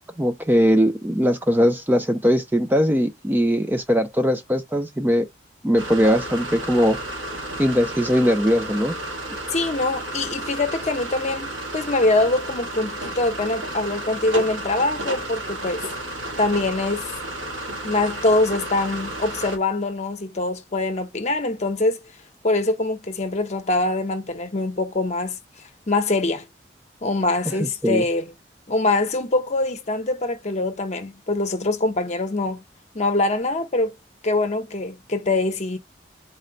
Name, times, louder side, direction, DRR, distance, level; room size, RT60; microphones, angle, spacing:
voice 1, 0.2-5.3 5.6-7.0 7.6-8.9 27.5-28.0, equal, 10° right, 0.4 m, -20 dB
sound 1, 5.8-19.6, right 1 dB, 90° right, 1.7 m, -32 dB
voice 2, 9.3-15.8 16.4-17.1 17.8-22.0 22.4-25.4 25.9-26.5 27.0-28.3 28.7-32.6 32.9-33.9 34.2-35.8, left 2 dB, 35° left, 0.8 m, -23 dB
4.2 x 2.2 x 3.8 m
head